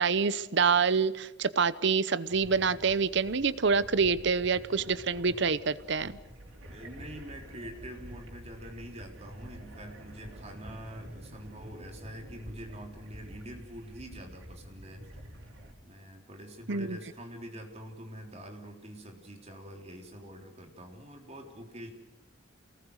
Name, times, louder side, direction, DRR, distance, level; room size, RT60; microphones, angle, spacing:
voice 1, 0.0-6.2 16.7-17.0, right 5 dB, 60° right, 16 dB, 0.8 m, -26 dB
sound 1, 2.3-15.7, equal, 90° right, 4.9 m, -48 dB
voice 2, 6.7-15.3 15.8-21.9, equal, 30° right, 3 dB, 3.6 m, -45 dB
28.0 x 19.5 x 6.5 m, 0.96 s
head